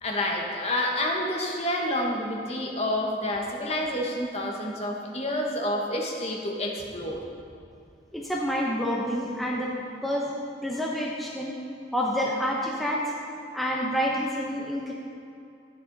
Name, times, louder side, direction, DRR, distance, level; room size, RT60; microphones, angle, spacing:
voice 1, 0.0-7.2, left 1 dB, 35° left, 0 dB, 1.3 m, -29 dB
voice 2, 8.1-9.7 10.0-10.4 10.6-11.5 11.9-13.0 13.5-14.9, equal, ahead, -4 dB, 0.8 m, -28 dB
12.0 x 9.7 x 4.0 m, 2.5 s
head